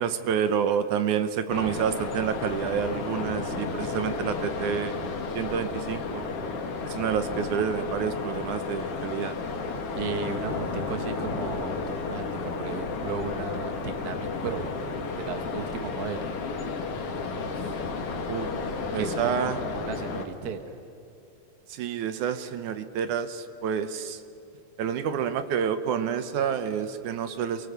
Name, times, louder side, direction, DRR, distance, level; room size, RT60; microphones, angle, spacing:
voice 1, 0.0-5.0 5.3-6.3 6.8-9.4 18.3-18.5 18.9-19.6 21.7-24.2 24.8-27.7, right 8 dB, 70° right, 10 dB, 2.1 m, -28 dB
sound 1, 1.5-20.3, left 4 dB, 50° left, 2.2 m, -32 dB
voice 2, 9.9-14.7 15.2-16.4 18.9-20.8, right 5 dB, 90° right, 7 dB, 0.8 m, -35 dB
28.5 x 23.5 x 6.9 m, 2.7 s
omnidirectional pair, 4.3 m